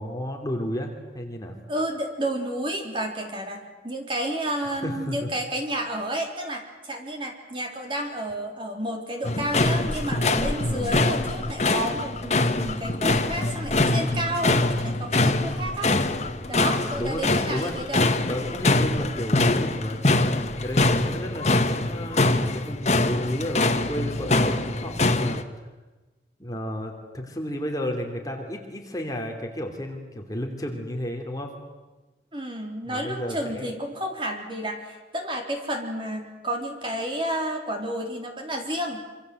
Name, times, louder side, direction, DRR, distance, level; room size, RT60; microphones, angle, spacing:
voice 1, 0.0-1.6 4.7-5.3 10.6-10.9 16.7-17.7 18.0-25.4 26.4-31.5 32.8-33.7, equal, 20° left, 2 dB, 3.0 m, -33 dB
voice 2, 1.7-16.0 16.5-18.0 32.3-39.0, right 1 dB, 30° right, 2 dB, 3.9 m, -31 dB
sound 1, 9.2-25.4, left 2 dB, 40° left, 1.5 m, -24 dB
26.5 x 25.5 x 7.9 m, 1.2 s
head